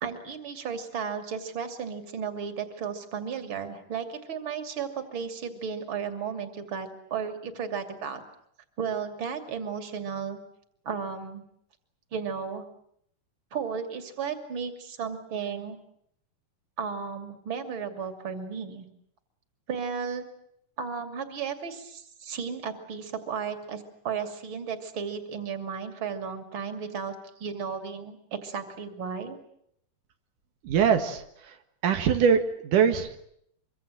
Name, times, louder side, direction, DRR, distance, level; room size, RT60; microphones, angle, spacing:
voice 1, 0.0-8.2 8.8-10.4 10.8-11.4 12.1-12.7 13.5-15.8 16.8-18.9 19.7-20.3 20.8-29.4, right 6 dB, 40° right, 7 dB, 3.3 m, -34 dB
voice 2, 30.6-31.6 31.8-33.3, right 7 dB, 90° right, 6 dB, 3.3 m, -23 dB
25.0 x 24.5 x 7.7 m, 0.71 s
omnidirectional pair, 3.6 m